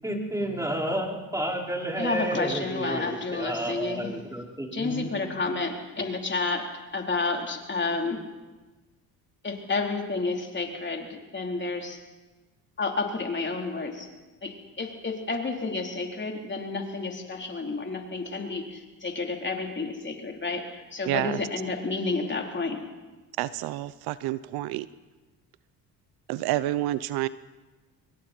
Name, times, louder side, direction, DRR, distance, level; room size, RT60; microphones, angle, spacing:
voice 1, 0.0-5.1, right 1 dB, 10° right, -1 dB, 5.4 m, -31 dB
voice 2, 2.0-4.1 4.7-6.6 6.9-8.2 9.4-12.0 12.8-14.1 14.4-22.8, left 3 dB, 30° left, 1 dB, 3.9 m, -30 dB
voice 3, 21.1-21.4 23.4-24.9 26.3-27.3, right 15 dB, 75° right, 16 dB, 0.8 m, -28 dB
27.0 x 22.5 x 4.5 m, 1.2 s
supercardioid pair, 75°, 38 cm